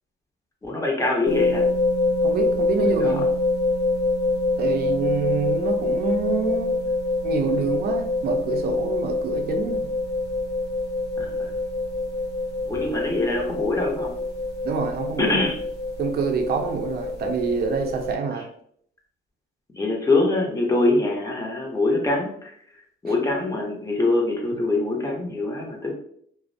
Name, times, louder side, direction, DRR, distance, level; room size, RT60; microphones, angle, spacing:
voice 1, 0.6-1.7 2.8-3.2 11.2-11.3 12.7-14.1 15.2-15.6 19.7-22.5 23.0-25.9, left 2 dB, 15° left, 0 dB, 0.6 m, -24 dB
sound 1, 1.3-18.1, left 2 dB, 60° left, 0.6 m, -25 dB
voice 2, 2.2-3.3 4.6-6.7 7.2-9.9 14.6-15.4 16.0-18.5 23.1-23.2, right 5 dB, 55° right, 3 dB, 0.5 m, -26 dB
2.4 x 2.0 x 2.5 m, 0.65 s
cardioid pair, 90°, 20 cm